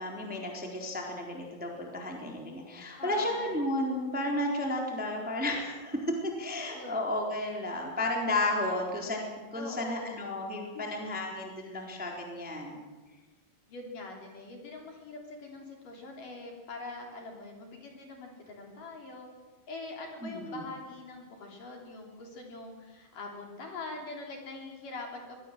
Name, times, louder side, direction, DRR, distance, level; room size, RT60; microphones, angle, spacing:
voice 1, 0.0-12.9 20.2-20.6, left 1 dB, ahead, 0 dB, 3.0 m, -33 dB
voice 2, 3.0-3.5 6.7-6.9 9.5-10.2 10.7-10.8 13.7-19.3 19.7-25.4, left 3 dB, 50° left, 1 dB, 4.6 m, -43 dB
24.5 x 19.5 x 7.7 m, 1.3 s
omnidirectional pair, 5.4 m